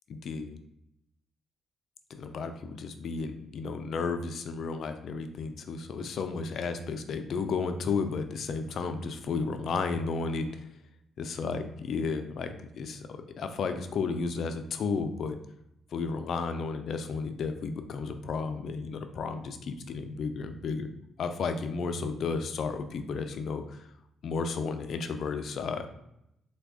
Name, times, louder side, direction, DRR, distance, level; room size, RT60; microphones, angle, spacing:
voice 1, 0.1-0.6 2.1-10.5 11.2-15.4 15.9-20.9 21.2-23.8 24.2-25.9, left 4 dB, 60° left, 8 dB, 0.4 m, -33 dB
3.4 x 2.2 x 3.5 m, 0.82 s
cardioid pair, 90°, 0 cm